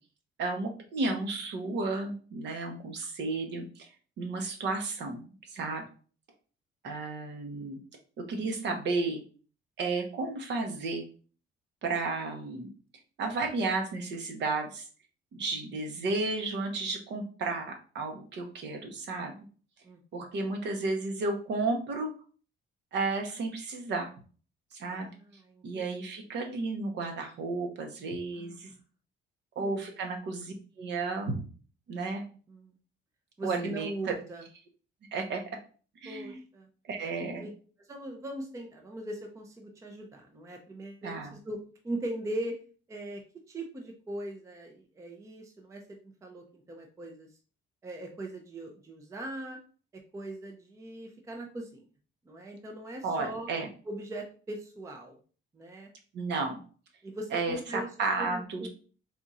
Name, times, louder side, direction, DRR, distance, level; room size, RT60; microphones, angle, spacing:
voice 1, 0.4-3.9 4.2-5.8 6.8-7.8 8.3-9.2 9.8-11.0 11.8-12.7 13.2-14.9 15.3-19.4 20.1-22.1 22.9-24.1 24.7-25.1 25.6-28.7 29.6-31.4 31.9-32.2 33.4-34.1 35.1-35.4 36.0-36.4 36.8-37.5 41.0-41.3 53.0-53.7 56.1-56.6 57.3-58.7, right 3 dB, 60° right, 3 dB, 0.9 m, -33 dB
voice 2, 19.8-20.2 24.9-25.9 28.4-28.7 29.6-29.9 32.5-32.8 33.4-34.5 36.0-36.7 37.2-37.5 37.9-41.6 41.8-42.6 42.9-43.2 43.5-47.4 47.8-49.6 50.1-51.9 52.3-53.5 53.8-55.2 55.5-55.9 57.0-57.9 58.2-58.7, right 1 dB, 15° right, 2 dB, 0.5 m, -40 dB
3.6 x 2.5 x 4.1 m, 0.39 s
cardioid pair, 170°, 21 cm